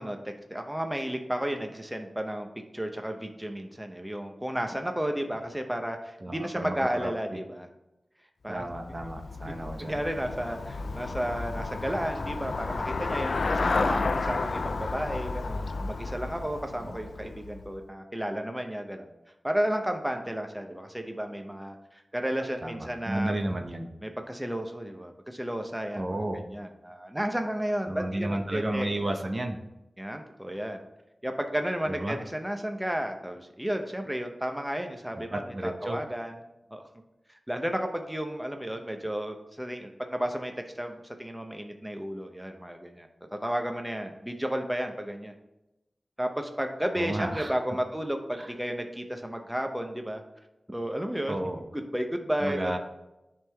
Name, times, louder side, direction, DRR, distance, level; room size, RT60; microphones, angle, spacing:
voice 1, 0.0-2.5 2.7-7.7 8.4-8.7 9.5-19.1 19.4-23.4 24.0-28.9 30.0-30.8 31.2-36.4 36.7-36.8 37.3-40.5 40.8-45.3 46.2-50.2 50.7-51.4 51.9-52.8, equal, 10° right, 5 dB, 0.8 m, -33 dB
voice 2, 6.2-7.4 8.5-10.0 16.8-17.0 22.6-23.9 26.0-26.4 27.9-29.6 31.9-32.2 35.2-36.0 47.0-47.5 48.4-48.5 51.3-51.6 52.4-52.8, right 1 dB, 45° right, 4 dB, 0.8 m, -32 dB
Traffic noise roadway noise / Bicycle, 8.6-17.8, left 3 dB, 80° left, 0.4 m, -32 dB
10.5 x 3.7 x 3.4 m, 0.96 s
cardioid pair, 40°, 0 cm